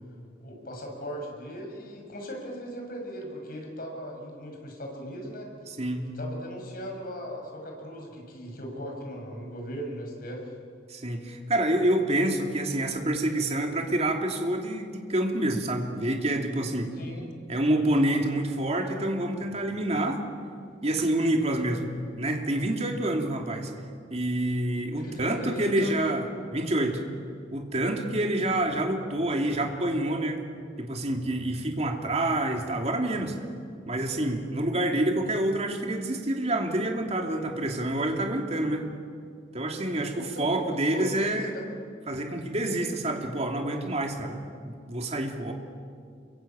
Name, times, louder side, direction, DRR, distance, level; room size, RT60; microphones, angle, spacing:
voice 1, 0.4-5.5 6.0-10.5 16.9-17.3 24.9-25.9 40.1-41.3, equal, 50° left, 1 dB, 6.7 m, -38 dB
voice 2, 5.8-6.1 10.9-16.9 17.5-20.2 20.8-23.7 24.1-26.2 26.5-27.0 27.5-30.4 30.8-33.3 33.9-38.9 39.5-41.5 42.1-45.5, right 1 dB, 35° right, 3 dB, 2.9 m, -27 dB
28.0 x 23.5 x 8.9 m, 2.2 s
head